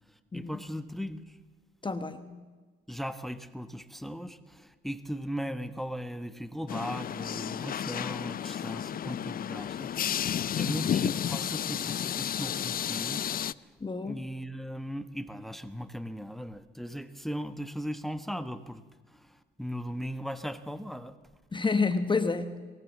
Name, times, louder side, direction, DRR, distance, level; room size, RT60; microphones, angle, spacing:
voice 1, 0.1-1.4 2.9-13.7 14.0-21.2, equal, ahead, 11 dB, 1.1 m, -38 dB
voice 2, 1.8-2.3 13.8-14.2 21.5-22.6, left 4 dB, 25° left, 9 dB, 1.2 m, -29 dB
sound 1, 6.7-13.5, left 9 dB, 45° left, 0.5 m, -32 dB
23.0 x 16.5 x 7.3 m, 1.4 s
cardioid pair, 90°, 20 cm